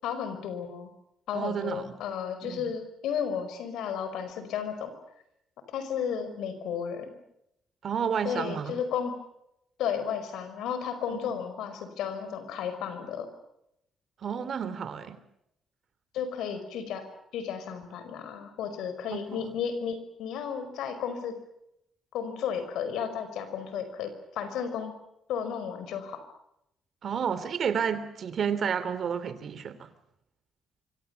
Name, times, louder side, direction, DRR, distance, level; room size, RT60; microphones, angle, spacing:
voice 1, 0.0-0.9 1.3-5.0 5.7-7.2 8.2-9.2 9.8-13.3 16.1-17.1 17.3-21.4 22.1-24.9 25.3-26.2, left 7 dB, 85° left, 5.2 m, -33 dB
voice 2, 1.3-2.0 2.4-2.7 7.8-8.8 11.1-11.3 14.2-15.2 19.1-19.5 27.0-29.9, right 7 dB, 55° right, 3.1 m, -31 dB
25.5 x 25.5 x 7.0 m
cardioid pair, 90°, 0 cm